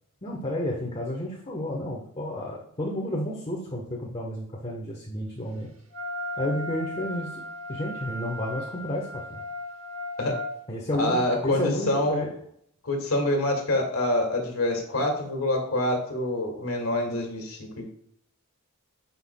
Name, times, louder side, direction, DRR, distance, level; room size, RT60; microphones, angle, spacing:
voice 1, 0.2-5.7 6.4-7.4 7.7-9.4 10.7-12.3, left 1 dB, 30° left, -2 dB, 1.0 m, -31 dB
Wind instrument woodwind instrument, 5.9-10.5, left 1 dB, 70° right, 1.0 m, -36 dB
voice 2, 10.9-12.2 12.8-17.9, left 1 dB, 85° left, 2 dB, 1.9 m, -26 dB
9.7 x 5.8 x 2.2 m, 0.70 s
head